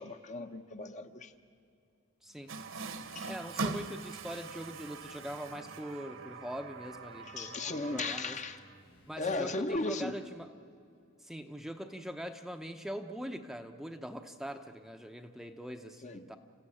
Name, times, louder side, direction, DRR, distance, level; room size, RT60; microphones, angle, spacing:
voice 1, 0.0-1.3 3.1-3.3 7.3-8.6 9.2-10.1 16.0-16.3, left 2 dB, 35° left, 1.0 m, -36 dB
sound 1, 2.2-9.6, left 1 dB, 70° left, 5.5 m, -62 dB
voice 2, 2.2-2.5 3.3-8.4 9.1-10.5 11.2-16.4, equal, ahead, 0.8 m, -42 dB
Water tap faucet, 2.5-8.8, right 4 dB, 65° right, 1.3 m, -42 dB
29.0 x 15.0 x 10.0 m
head